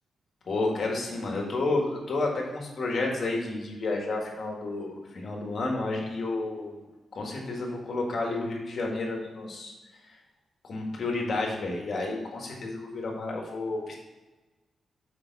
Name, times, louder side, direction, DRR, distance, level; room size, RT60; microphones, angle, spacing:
voice 1, 0.5-6.8 7.1-9.7 10.6-14.0, left 2 dB, 60° left, 0 dB, 1.8 m, -31 dB
6.8 x 5.4 x 4.1 m, 1.2 s
cardioid pair, 105°, 0 cm